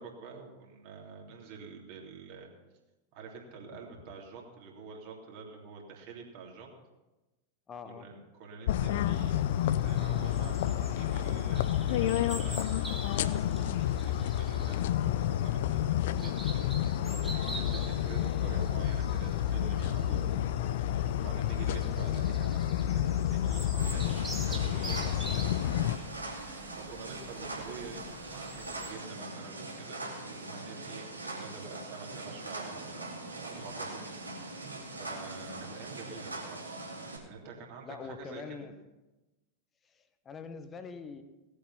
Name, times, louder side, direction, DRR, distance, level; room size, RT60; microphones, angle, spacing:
voice 1, 0.0-2.5 3.1-6.7 7.8-8.1 8.4-17.1 17.4-22.6 22.8-34.2 34.9-36.6 37.2-38.7, right 4 dB, 45° right, -1 dB, 3.2 m, -48 dB
voice 2, 7.7-8.1 17.6-17.9 37.8-38.7 39.8-41.2, left 5 dB, 20° left, 10 dB, 1.2 m, -44 dB
sound 1, 8.7-26.0, left 11 dB, 55° left, 0.5 m, -30 dB
sound 2, 9.1-28.9, right 1 dB, 5° right, 2.0 m, -47 dB
sound 3, 23.8-37.2, right 2 dB, 80° right, 2.6 m, -42 dB
18.0 x 8.5 x 5.7 m, 1.1 s
figure-of-eight pair, 90°, 0 cm